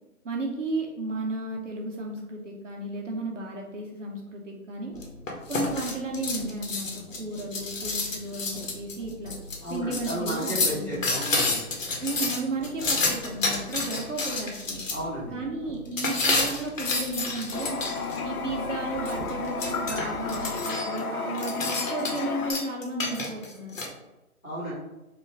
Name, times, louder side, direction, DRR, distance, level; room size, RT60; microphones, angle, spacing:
voice 1, 0.2-4.9 5.5-9.3 9.7-11.1 12.0-14.8 15.3-17.8 18.2-23.8, right 2 dB, 55° right, 0 dB, 0.8 m, -33 dB
sound 1, 4.9-20.6, equal, 25° left, 1.0 m, -45 dB
sound 2, 5.0-14.9 16.0-18.2 19.0-21.0 21.3-22.2 22.5-23.9, left 3 dB, 60° left, 1.1 m, -29 dB
voice 2, 9.6-11.6 14.9-15.4 24.4-24.7, equal, 5° left, -14 dB, 1.4 m, -33 dB
Toilet flush, 17.5-22.5, left 4 dB, 75° left, 0.7 m, -32 dB
4.8 x 2.4 x 3.3 m, 1.0 s
hypercardioid pair, 170°, 45 cm